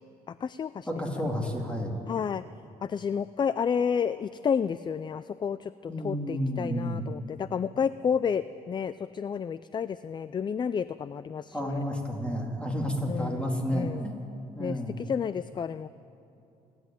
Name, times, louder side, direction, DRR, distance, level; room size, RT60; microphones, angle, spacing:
voice 1, 0.3-0.9 2.1-2.4 2.8-11.8 13.1-14.1 14.6-15.9, left 7 dB, 30° left, 15 dB, 0.4 m, -31 dB
voice 2, 0.9-1.9 5.9-7.1 11.5-14.2 14.5-15.0, equal, 5° left, 0 dB, 3.5 m, -31 dB
28.0 x 10.5 x 9.2 m, 2.8 s
cardioid pair, 110°, 15 cm